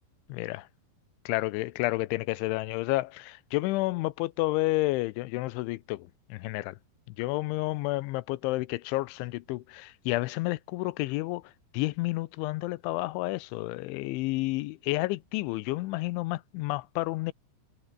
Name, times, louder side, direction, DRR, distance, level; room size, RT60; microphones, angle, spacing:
voice 1, 0.3-0.7 1.3-6.8 7.2-11.4 11.7-17.3, left 20 dB, 80° left, 3.0 m, -30 dB
omnidirectional pair, 5.8 m